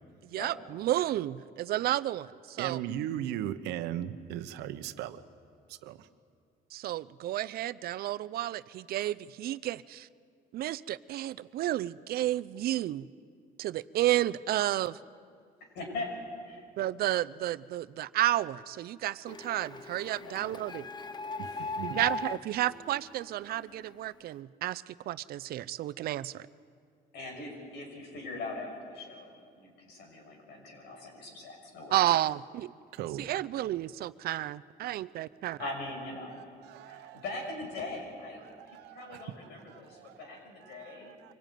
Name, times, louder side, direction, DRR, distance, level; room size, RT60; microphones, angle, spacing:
voice 1, 0.2-2.8 6.7-10.1 10.5-13.1 13.6-15.0 16.8-20.9 21.8-26.5 31.9-32.7 33.2-35.6, right 14 dB, 65° right, 0.6 m, -31 dB
voice 2, 2.6-5.2 5.7-6.1 21.4-22.0 32.9-33.2 36.3-37.2 38.4-39.2 39.7-40.2 40.6-41.3, right 11 dB, 90° right, 1.0 m, -38 dB
voice 3, 15.7-16.1 16.4-16.6 20.2-20.6 27.1-32.1 35.6-36.4 36.9-41.2, left 2 dB, 80° left, 6.6 m, -41 dB
Printer, 19.3-23.9, left 3 dB, 25° left, 0.7 m, -39 dB
24.5 x 18.0 x 9.2 m
cardioid pair, 110°, 17 cm